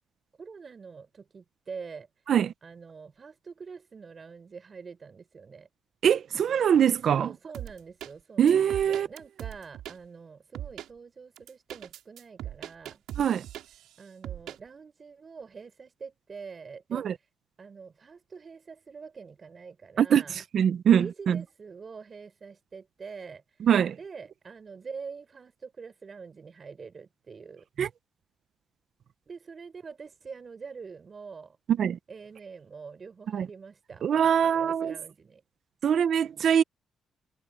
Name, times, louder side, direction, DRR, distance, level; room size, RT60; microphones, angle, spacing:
voice 1, 0.4-2.1 2.6-5.7 7.2-13.0 14.0-17.0 17.6-20.4 21.0-23.4 24.0-27.7 29.3-31.6 32.1-35.4, right 5 dB, 40° right, 5.4 m, -45 dB
voice 2, 6.0-7.3 8.4-9.1 13.2-13.4 16.9-17.1 20.0-21.4 23.6-24.0 27.8-27.9 31.7-32.0 33.3-33.5 34.0-35.0 35.8-36.6, right 8 dB, 60° right, 1.0 m, -23 dB
sound 1, 7.5-8.1 8.5-10.0 10.5-10.9 11.4-13.9 14.2-14.6, right 12 dB, 80° right, 4.2 m, -40 dB
cardioid pair, 90°, 0 cm